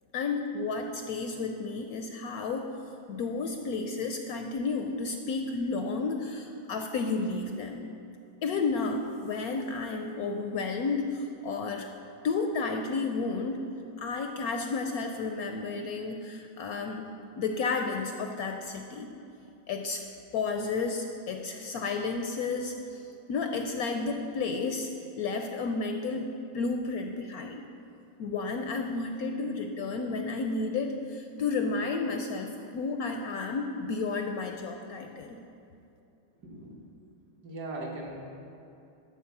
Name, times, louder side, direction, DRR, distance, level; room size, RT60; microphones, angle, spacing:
voice 1, 0.1-2.7 3.1-7.8 8.4-11.9 12.2-13.6 14.0-19.1 19.7-20.1 20.3-24.9 25.2-27.6 28.2-35.4, left 4 dB, 70° left, 4 dB, 0.9 m, -32 dB
voice 2, 36.4-36.7 37.4-38.1, right 2 dB, 65° right, -2 dB, 1.9 m, -38 dB
12.0 x 4.2 x 7.1 m, 2.7 s
omnidirectional pair, 1.9 m